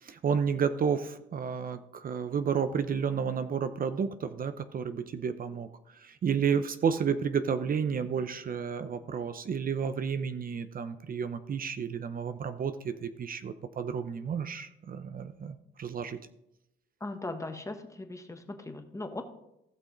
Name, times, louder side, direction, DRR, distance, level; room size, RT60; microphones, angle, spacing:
voice 1, 0.0-5.7 6.0-16.2, right 6 dB, 45° right, 10 dB, 0.7 m, -31 dB
voice 2, 17.0-19.2, left 2 dB, 15° left, 6 dB, 1.3 m, -39 dB
15.5 x 6.2 x 3.9 m, 0.86 s
cardioid pair, 90°, 20 cm